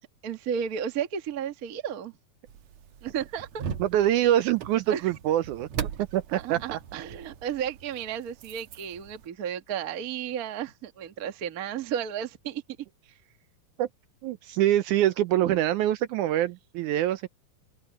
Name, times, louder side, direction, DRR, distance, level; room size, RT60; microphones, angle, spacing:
voice 1, 0.2-2.1 3.0-3.6 4.9-5.0 6.3-12.6 15.4-15.6, right 8 dB, 50° right, 1.1 m, -33 dB
sound 1, 2.5-9.3, right 8 dB, 65° right, 2.2 m, -40 dB
voice 2, 3.8-5.7 6.1-6.8 13.8-13.9 14.2-17.3, right 12 dB, 80° right, 2.0 m, -25 dB
omnidirectional pair, 3.8 m